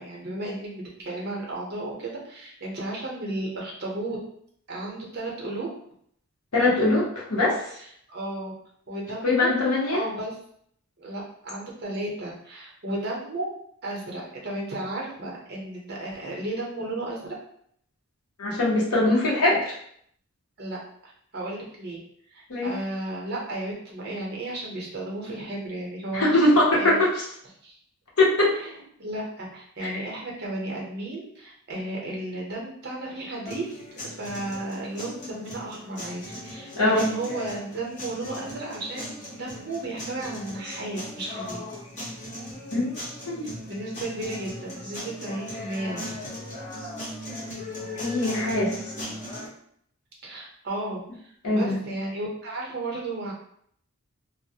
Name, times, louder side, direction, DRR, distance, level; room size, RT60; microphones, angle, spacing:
voice 1, 0.0-4.2 4.7-5.7 7.7-8.5 8.9-9.5 9.9-10.3 11.0-13.5 13.8-17.3 20.6-20.8 21.3-22.0 22.3-26.4 26.7-27.0 27.6-27.8 28.6-33.7 34.0-41.6 43.7-46.2 50.2-53.3, right 2 dB, 45° right, -3 dB, 0.7 m, -34 dB
voice 2, 6.5-7.6 9.2-10.0 18.4-19.8 22.5-22.7 26.1-27.2 28.2-28.6 29.8-30.0 36.7-37.0 42.7-42.9 43.3-43.5 48.0-48.9 51.4-51.8, left 2 dB, 85° left, -5 dB, 0.8 m, -22 dB
sound 1, 33.5-49.5, left 1 dB, 35° left, 0.8 m, -38 dB
2.3 x 2.1 x 2.7 m, 0.67 s
head